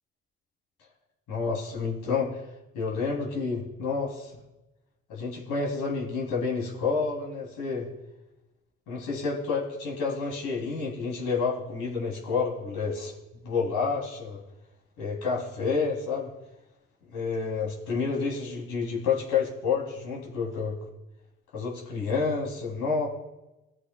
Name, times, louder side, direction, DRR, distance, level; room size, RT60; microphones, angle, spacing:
voice 1, 1.3-2.4 2.7-4.4 5.1-7.9 8.9-13.1 13.4-14.4 15.0-16.3 17.1-20.8 21.5-23.1, left 5 dB, 70° left, -3 dB, 3.0 m, -29 dB
16.0 x 7.9 x 2.2 m, 1.0 s
hypercardioid pair, 50°, 32 cm